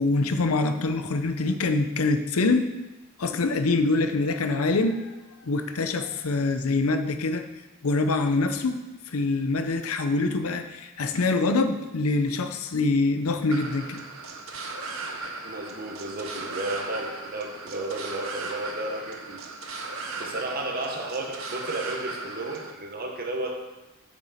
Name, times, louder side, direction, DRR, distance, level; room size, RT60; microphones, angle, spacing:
voice 1, 0.0-2.7 3.2-5.2 5.4-7.5 7.8-14.0, left 3 dB, 85° left, 8 dB, 0.6 m, -25 dB
sound 1, 13.5-22.7, right 3 dB, 70° right, 0.9 m, -37 dB
voice 2, 15.4-19.5 20.2-23.6, right 2 dB, 45° right, 2 dB, 1.1 m, -33 dB
7.6 x 6.2 x 4.2 m, 1.1 s
head